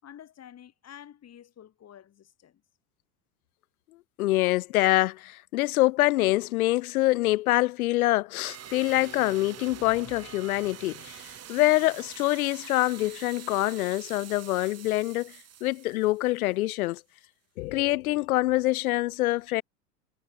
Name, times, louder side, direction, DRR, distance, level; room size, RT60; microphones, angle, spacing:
voice 1, 0.0-2.6, left 10 dB, 30° left, 6.3 m, -49 dB
voice 2, 4.2-15.3 15.6-17.0 17.6-19.6, left 18 dB, 60° left, 0.6 m, -25 dB
sound 1, 8.4-16.7, right 10 dB, 30° right, 6.0 m, -46 dB
figure-of-eight pair, 80°, 49 cm